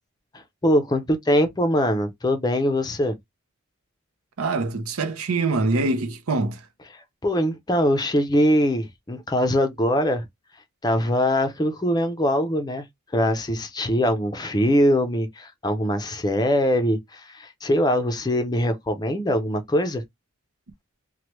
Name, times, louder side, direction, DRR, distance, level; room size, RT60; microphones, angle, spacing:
voice 1, 0.3-3.2 6.9-10.2 10.8-12.8 13.1-20.0, equal, 20° left, 0.5 m, -22 dB
voice 2, 4.4-6.6, right 3 dB, 85° right, 0.6 m, -24 dB
3.1 x 2.2 x 3.0 m
head